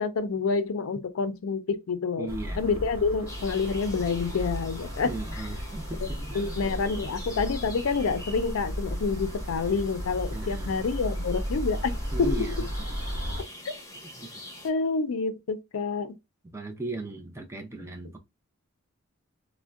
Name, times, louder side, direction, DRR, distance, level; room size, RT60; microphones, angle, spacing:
voice 1, 0.0-2.3 2.6-5.4 6.0-6.1 6.3-11.9 12.2-12.5 14.6-16.1, left 4 dB, 70° left, 0.4 m, -28 dB
voice 2, 2.2-2.7 5.0-7.1 10.3-10.8 12.1-12.7 14.2-14.4 16.5-18.2, right 2 dB, 10° right, 0.4 m, -37 dB
sound 1, 2.3-13.4, equal, 65° right, 0.9 m, -34 dB
sound 2, 3.3-14.7, left 1 dB, 15° left, 0.9 m, -45 dB
3.5 x 2.1 x 2.3 m
head